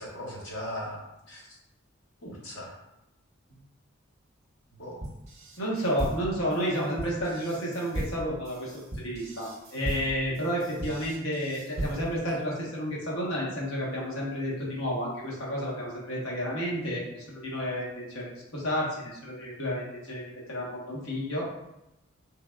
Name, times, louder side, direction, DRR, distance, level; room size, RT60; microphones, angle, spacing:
voice 1, 0.0-1.6 2.2-2.8 4.7-5.0, equal, 60° left, -2 dB, 0.8 m, -39 dB
sound 1, 5.0-12.3, right 1 dB, 35° right, 0.7 m, -37 dB
voice 2, 5.6-21.5, equal, 80° left, -4 dB, 1.0 m, -31 dB
3.3 x 3.2 x 2.2 m, 0.90 s
head